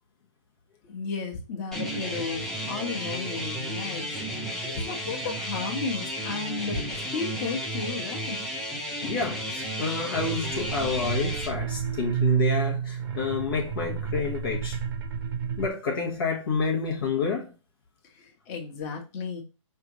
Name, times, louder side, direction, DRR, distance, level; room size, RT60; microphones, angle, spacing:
voice 1, 0.8-4.1 4.6-6.8 7.1-8.4 18.2-19.4, left 4 dB, 25° left, 1.3 m, -33 dB
sound 1, 1.7-11.5, equal, 5° left, 0.6 m, -33 dB
voice 2, 9.0-14.8 15.6-17.5, left 4 dB, 45° left, 1.1 m, -29 dB
sound 2, 10.2-15.7, right 8 dB, 45° right, 0.9 m, -30 dB
5.2 x 3.3 x 3.0 m
hypercardioid pair, 155°, 16 cm